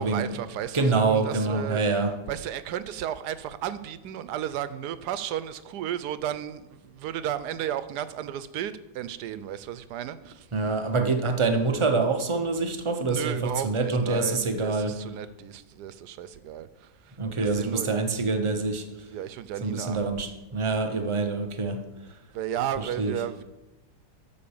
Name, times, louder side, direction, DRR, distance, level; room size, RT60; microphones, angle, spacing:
voice 1, 0.0-1.8 2.3-10.5 13.1-17.9 19.1-20.0 22.3-23.4, right 10 dB, 75° right, 1.2 m, -34 dB
voice 2, 0.7-2.2 10.5-15.0 17.2-18.9 19.6-21.8 23.0-23.1, right 3 dB, 50° right, 0.3 m, -26 dB
12.0 x 4.8 x 7.0 m
omnidirectional pair, 1.8 m